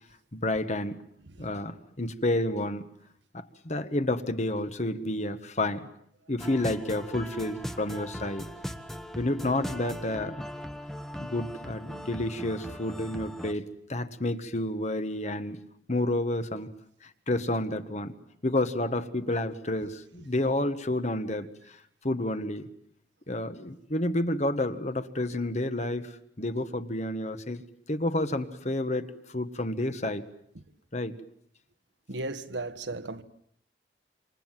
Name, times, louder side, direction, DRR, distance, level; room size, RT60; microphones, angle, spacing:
voice 1, 0.3-1.0 1.4-2.8 3.3-5.9 6.3-8.4 9.2-10.4 11.2-13.6 13.9-15.6 15.9-16.7 17.0-18.1 18.4-21.8 22.0-22.6 23.3-30.2 30.9-31.2, left 1 dB, 40° left, 1.5 m, -30 dB
sound 1, 6.4-13.5, equal, ahead, 1.2 m, -39 dB
voice 2, 32.1-33.2, right 2 dB, 80° right, 1.5 m, -36 dB
28.0 x 26.5 x 7.7 m
head